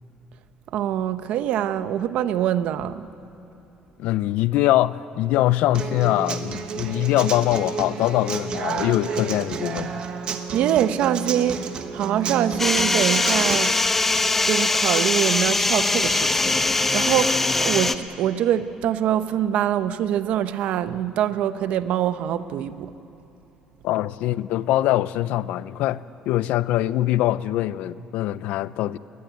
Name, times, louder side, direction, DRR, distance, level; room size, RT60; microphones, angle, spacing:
voice 1, 0.7-3.1 10.5-13.7 14.1-22.9, right 10 dB, 60° right, 12 dB, 0.8 m, -24 dB
voice 2, 4.0-10.0 23.8-29.0, left 14 dB, 80° left, 17 dB, 0.5 m, -23 dB
Human voice / Acoustic guitar, 5.7-13.7, right 6 dB, 40° right, 1.3 m, -31 dB
sound 1, 12.6-18.0, left 2 dB, 10° left, 0.6 m, -21 dB
20.5 x 20.5 x 9.4 m, 2.9 s
cardioid pair, 175°, 2 cm